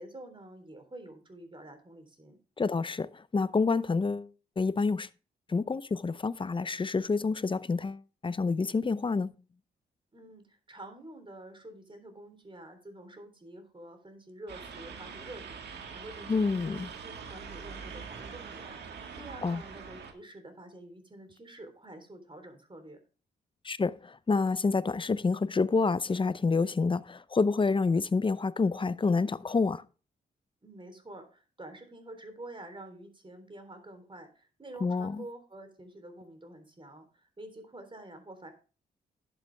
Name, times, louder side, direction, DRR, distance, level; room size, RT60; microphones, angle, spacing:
voice 1, 0.0-2.4 10.1-23.0 30.6-38.5, right 1 dB, 30° right, 3.6 m, -48 dB
voice 2, 2.6-4.3 4.6-5.1 5.5-9.3 16.3-16.9 19.4-19.6 23.6-29.8 34.8-35.2, left 4 dB, 30° left, 0.7 m, -28 dB
sound 1, 14.5-20.1, right 6 dB, 70° right, 1.9 m, -44 dB
11.0 x 7.8 x 3.5 m
supercardioid pair, 45°, 18 cm